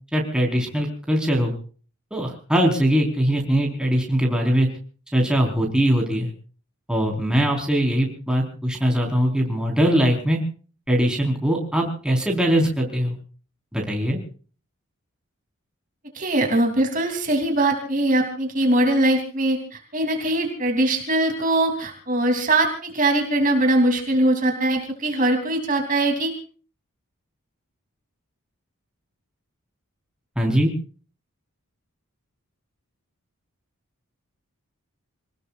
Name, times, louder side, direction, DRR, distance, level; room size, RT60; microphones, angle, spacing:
voice 1, 0.1-1.5 2.1-4.7 5.1-6.3 6.9-10.4 10.9-13.2 13.7-14.2 30.4-30.7, equal, 5° right, 0 dB, 4.4 m, -21 dB
voice 2, 16.1-26.3, right 1 dB, 35° right, 3 dB, 3.1 m, -21 dB
28.0 x 19.5 x 2.5 m, 0.41 s
head